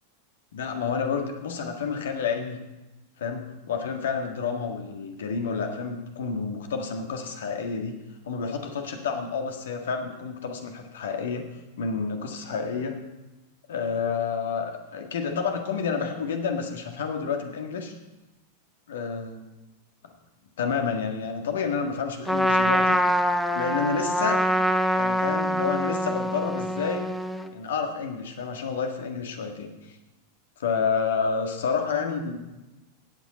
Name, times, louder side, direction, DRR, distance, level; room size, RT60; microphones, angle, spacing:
voice 1, 0.5-2.6 3.2-11.5 11.8-13.0 13.7-17.9 18.9-19.5 20.6-23.2 23.5-24.4 24.9-27.1 27.5-29.9 30.6-32.4, left 5 dB, 60° left, 4 dB, 1.7 m, -29 dB
Trumpet, 22.3-27.5, equal, ahead, 0.7 m, -24 dB
17.0 x 8.4 x 4.2 m, 1.0 s
figure-of-eight pair, 90°, 0 cm